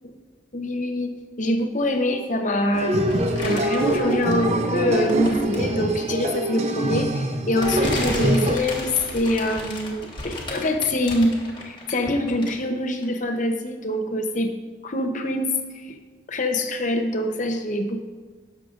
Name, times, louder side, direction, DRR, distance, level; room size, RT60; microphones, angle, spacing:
voice 1, 0.5-1.1 1.4-3.1 3.4-14.5 14.8-16.0 16.3-18.0, left 1 dB, 40° left, 4 dB, 0.8 m, -25 dB
sound 1, 2.7-8.6, right 1 dB, 35° right, 0.6 m, -24 dB
sound 2, 3.1-4.6 5.0-5.8 6.8-6.9 7.6-12.7 13.0-13.1, left 2 dB, 25° left, 1.4 m, -34 dB
17.0 x 6.6 x 2.5 m, 1.4 s
head